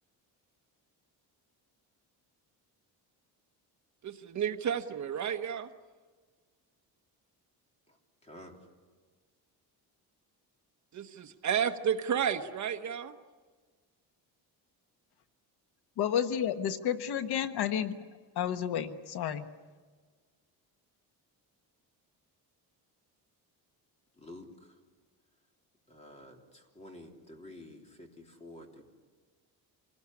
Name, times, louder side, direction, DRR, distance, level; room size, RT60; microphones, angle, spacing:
voice 1, 4.0-5.7 10.9-13.1, right 8 dB, 45° right, 7 dB, 1.2 m, -32 dB
voice 2, 7.9-8.6 24.1-24.8 25.9-28.8, left 1 dB, 15° left, 2 dB, 3.3 m, -50 dB
voice 3, 16.0-18.0 18.3-19.5, left 9 dB, 75° left, 9 dB, 1.4 m, -31 dB
27.0 x 19.5 x 9.8 m, 1.5 s
cardioid pair, 170°, 39 cm